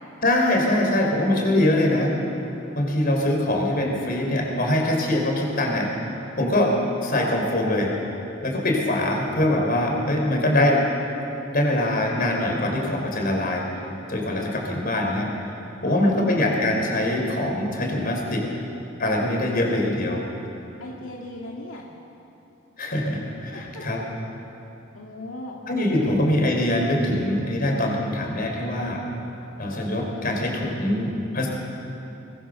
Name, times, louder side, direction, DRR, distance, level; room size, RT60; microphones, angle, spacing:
voice 1, 0.2-2.1 2.7-5.9 6.4-6.7 7.0-7.9 8.4-10.9 11.5-13.7 14.1-15.3 15.8-18.4 19.0-20.2 22.8-24.0 25.7-29.0 29.6-31.5, left 1 dB, 50° left, 0 dB, 4.9 m, -23 dB
voice 2, 15.8-16.4 20.8-21.9 23.5-24.0 24.9-25.6 26.0-26.1, left 1 dB, 90° left, -2 dB, 2.3 m, -38 dB
23.5 x 22.0 x 6.8 m, 2.9 s
head